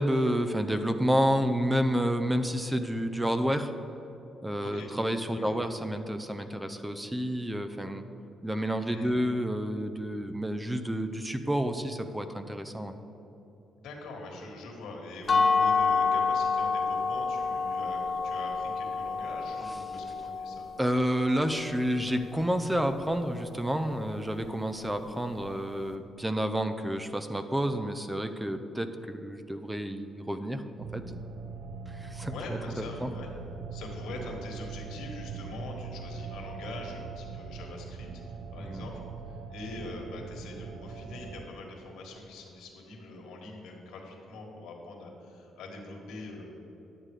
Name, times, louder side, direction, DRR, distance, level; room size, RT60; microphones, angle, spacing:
voice 1, 0.0-3.7 4.4-8.0 8.4-13.0 20.8-30.6 30.9-31.0 31.9-33.1 38.6-38.8, equal, 10° right, 8 dB, 0.6 m, -30 dB
voice 2, 8.9-9.2 13.8-20.7 32.3-33.3 33.7-38.9 39.3-46.5, left 2 dB, 85° left, 0 dB, 1.7 m, -43 dB
sound 1, 15.3-21.1, left 4 dB, 40° left, 0.8 m, -28 dB
sound 2, 30.8-41.4, right 5 dB, 65° right, 0.6 m, -41 dB
11.0 x 7.5 x 4.9 m, 3.0 s
cardioid pair, 90°, 0 cm